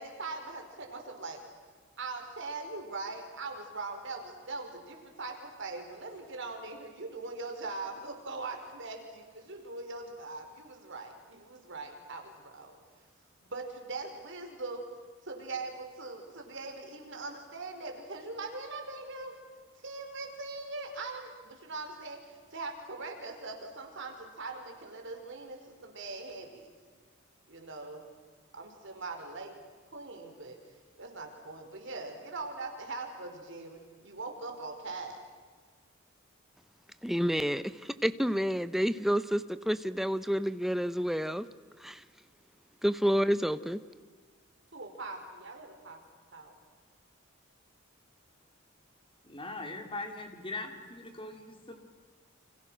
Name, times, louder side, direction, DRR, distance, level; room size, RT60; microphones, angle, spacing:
voice 1, 0.0-1.4 2.0-12.8 13.4-14.9 15.2-19.4 19.8-26.7 27.5-28.0 28.5-29.5 29.9-30.6 31.0-35.2 44.7-46.0 46.3-46.5, right 3 dB, 60° right, 3 dB, 4.7 m, -41 dB
voice 2, 37.0-41.5 41.8-42.0 42.8-43.8, equal, ahead, 12 dB, 0.8 m, -29 dB
voice 3, 49.2-51.8, left 2 dB, 25° left, 4 dB, 3.1 m, -40 dB
29.5 x 27.0 x 6.3 m, 1.5 s
head